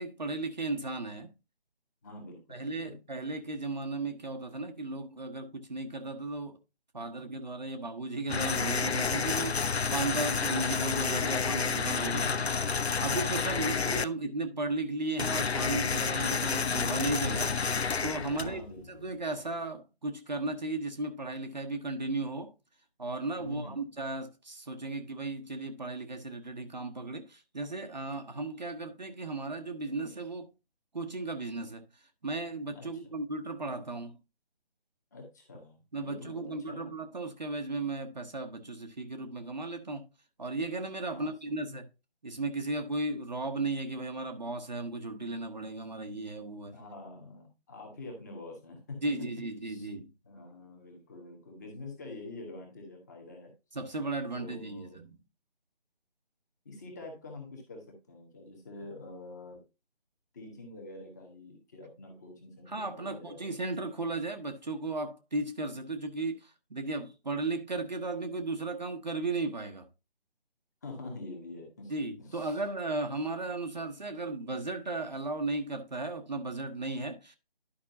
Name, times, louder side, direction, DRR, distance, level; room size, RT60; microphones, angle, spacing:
voice 1, 0.0-1.3 2.5-6.6 6.9-12.3 13.0-17.5 18.0-18.6 18.9-22.5 23.0-30.5 30.9-31.8 32.2-34.2 35.9-40.1 40.4-41.9 42.2-46.7 49.0-50.1 53.7-55.2 62.7-69.9 71.9-77.4, right 2 dB, 45° right, 0.9 m, -35 dB
voice 2, 2.0-3.0 12.1-12.5 13.5-14.1 18.2-19.0 23.4-24.0 32.7-33.0 35.1-36.9 41.1-41.6 46.7-49.1 49.6-49.9 50.2-53.5 54.3-55.0 56.6-59.6 60.3-63.5 70.8-71.9 72.2-72.6, left 2 dB, 15° left, 1.4 m, -46 dB
sound 1, 8.3-14.0 15.2-18.8, left 5 dB, 90° left, 0.5 m, -30 dB
11.5 x 5.2 x 2.7 m
figure-of-eight pair, 155°, 31 cm